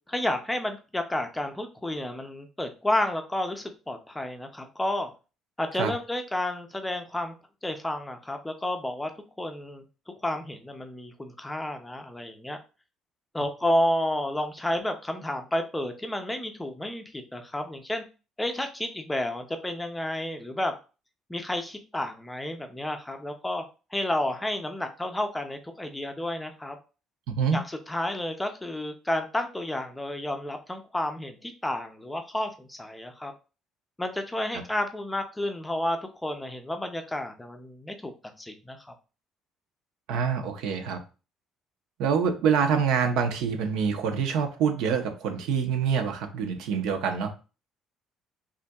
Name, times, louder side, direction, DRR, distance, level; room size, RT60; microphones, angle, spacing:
voice 1, 0.1-5.1 5.6-7.3 7.6-9.1 9.4-9.8 10.2-12.6 13.3-18.0 18.4-20.8 21.3-23.6 23.9-26.8 27.5-33.3 34.0-38.1 38.4-38.9, left 1 dB, 5° left, 0.5 m, -31 dB
voice 2, 40.1-41.0 42.0-47.3, right 6 dB, 85° right, 0.8 m, -26 dB
5.4 x 2.5 x 2.3 m
cardioid pair, 155°, 0 cm